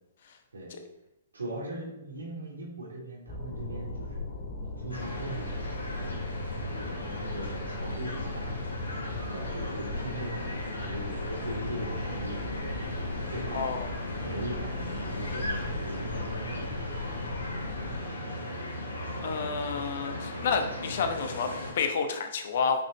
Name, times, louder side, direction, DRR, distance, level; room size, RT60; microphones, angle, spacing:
voice 1, 1.3-4.2 4.6-6.2 6.7-8.5 9.2-12.8 13.3-13.7 14.2-16.8, right 1 dB, 75° right, -2 dB, 2.7 m, -40 dB
sound 1, 3.3-18.0, left 2 dB, 25° left, 2.0 m, -38 dB
sound 2, 4.9-21.7, left 1 dB, 75° left, 2.4 m, -37 dB
voice 2, 13.5-13.9 19.2-22.8, left 5 dB, 55° left, 6 dB, 1.0 m, -30 dB
9.1 x 5.7 x 3.1 m, 0.90 s
figure-of-eight pair, 120°, 0 cm